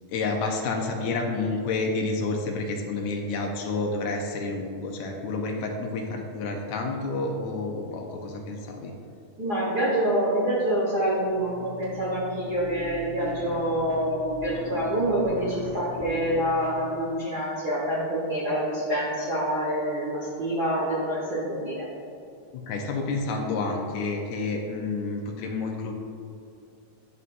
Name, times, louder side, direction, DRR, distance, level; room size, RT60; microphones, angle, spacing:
voice 1, 0.1-8.9 22.5-25.9, left 3 dB, 80° left, 2 dB, 1.7 m, -29 dB
voice 2, 9.4-21.8, right 1 dB, 80° right, -7 dB, 0.8 m, -26 dB
sound 1, 11.1-16.8, equal, 60° right, 2.0 m, -39 dB
11.0 x 5.4 x 2.5 m, 2.5 s
omnidirectional pair, 3.9 m